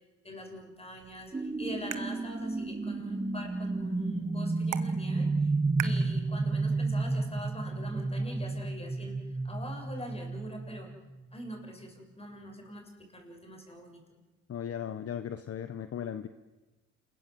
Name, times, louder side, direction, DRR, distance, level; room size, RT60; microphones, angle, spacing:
voice 1, 0.2-5.5 5.8-9.2 9.4-10.9 11.3-14.2, equal, 20° left, 2 dB, 7.4 m, -43 dB
sound 1, 1.0-7.0, right 13 dB, 85° right, 1.4 m, -45 dB
sound 2, 1.3-11.6, right 3 dB, 15° right, 1.3 m, -32 dB
voice 2, 14.5-16.3, left 9 dB, 50° left, 11 dB, 1.2 m, -37 dB
28.5 x 21.5 x 7.7 m, 1.2 s
cardioid pair, 90°, 30 cm